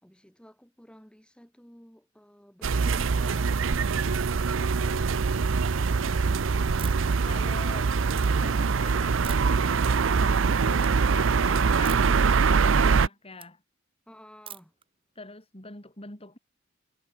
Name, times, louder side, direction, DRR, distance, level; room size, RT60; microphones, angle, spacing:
voice 1, 0.0-3.8 4.1-5.4 14.1-14.7, equal, 5° left, 5.5 m, -52 dB
sound 1, 2.6-13.1, right 5 dB, 70° right, 0.6 m, -23 dB
sound 2, 6.8-7.2 7.6-8.3 9.2-9.6 10.1-10.5 10.8-10.9 11.8-12.2 12.6-13.5 14.5-14.8, right 9 dB, 25° right, 2.2 m, -44 dB
voice 2, 7.2-13.6 15.1-16.4, left 2 dB, 30° left, 5.1 m, -45 dB
head